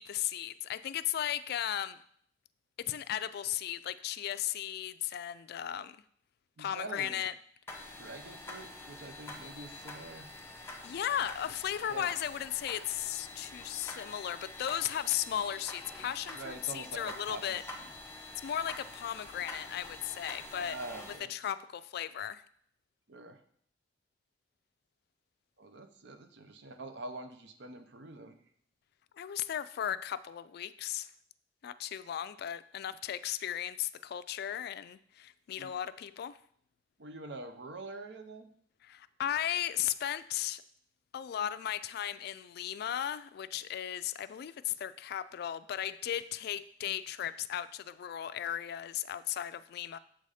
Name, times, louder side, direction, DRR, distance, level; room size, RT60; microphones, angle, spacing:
voice 1, 0.0-2.0 2.8-6.0 6.6-7.3 10.6-17.6 18.4-20.8 21.3-22.4 29.1-31.1 31.6-36.4 38.8-40.6 41.1-50.0, left 10 dB, 55° left, 15 dB, 0.3 m, -36 dB
voice 2, 6.6-7.2 8.0-10.3 11.9-12.1 16.3-17.9 20.5-21.3 23.1-23.4 25.6-28.3 35.6-35.7 37.0-38.5, right 2 dB, 65° right, 7 dB, 0.7 m, -45 dB
sound 1, 7.7-21.2, left 2 dB, 15° left, 1.0 m, -47 dB
7.4 x 4.1 x 4.9 m, 0.63 s
head